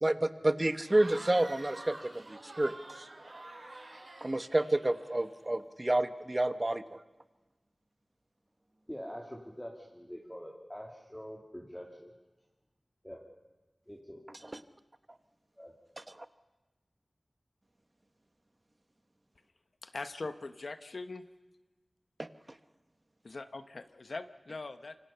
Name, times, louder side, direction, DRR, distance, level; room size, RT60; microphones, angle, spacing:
voice 1, 0.0-3.1 3.3-3.4 4.2-7.0 14.4-14.6 16.0-16.3 22.2-22.3, right 1 dB, 30° right, 10 dB, 1.1 m, -30 dB
Cheering / Crowd, 0.8-5.4, right 2 dB, 70° right, 6.3 m, -48 dB
voice 2, 8.9-12.1 13.0-13.2 13.9-14.2 15.6-15.7, equal, 10° left, -1 dB, 2.6 m, -45 dB
voice 3, 19.8-21.3 23.2-25.0, left 3 dB, 70° left, 9 dB, 1.0 m, -41 dB
27.0 x 24.5 x 5.7 m, 1.1 s
wide cardioid pair, 70°, 0 cm